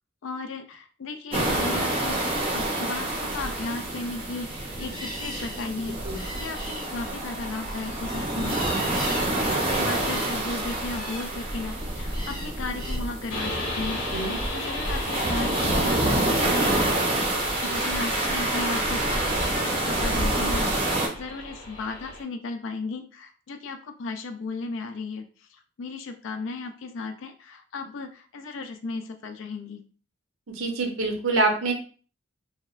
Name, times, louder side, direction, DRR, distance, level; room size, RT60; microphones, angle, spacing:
voice 1, 0.2-6.0 6.3-8.8 9.1-14.0 14.5-16.9 17.6-20.7 21.2-25.3 25.8-29.8, left 3 dB, 70° left, 7 dB, 0.4 m, -35 dB
sound 1, 1.3-21.1, right 1 dB, 25° right, 0.4 m, -27 dB
sound 2, 4.8-13.0, equal, 20° left, 0.5 m, -38 dB
sound 3, 13.3-22.2, left 1 dB, 90° left, 0.8 m, -35 dB
voice 2, 30.5-31.7, right 3 dB, 85° right, 2 dB, 0.7 m, -25 dB
2.7 x 2.0 x 2.4 m, 0.39 s
head